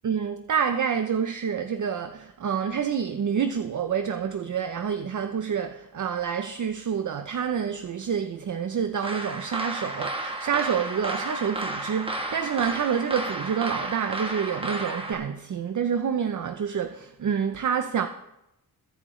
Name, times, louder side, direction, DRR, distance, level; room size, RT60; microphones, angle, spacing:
voice 1, 0.0-18.1, right 7 dB, 50° right, 0.6 m, -28 dB
sound 1, 9.0-15.1, right 2 dB, 15° right, 1.1 m, -32 dB
22.0 x 9.9 x 3.1 m
wide cardioid pair, 165°, 38 cm